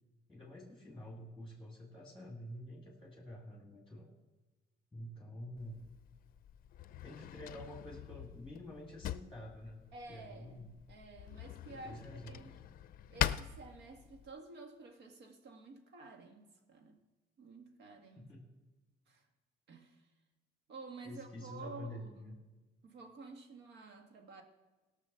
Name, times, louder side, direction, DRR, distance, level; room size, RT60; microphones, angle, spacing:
voice 1, 0.3-4.1 4.9-5.8 7.0-10.7 11.7-12.6 18.1-18.5 21.0-22.3, left 1 dB, 5° left, 0 dB, 2.1 m, -48 dB
Drawer open or close, 5.6-14.3, left 12 dB, 55° left, 0.5 m, -43 dB
voice 2, 9.9-12.5 13.1-17.0 17.4-18.3 19.1-19.3 19.7-20.1 20.7-22.3 22.8-24.4, right 3 dB, 75° right, 4 dB, 1.8 m, -51 dB
16.5 x 6.1 x 6.9 m, 1.2 s
cardioid pair, 110°, 17 cm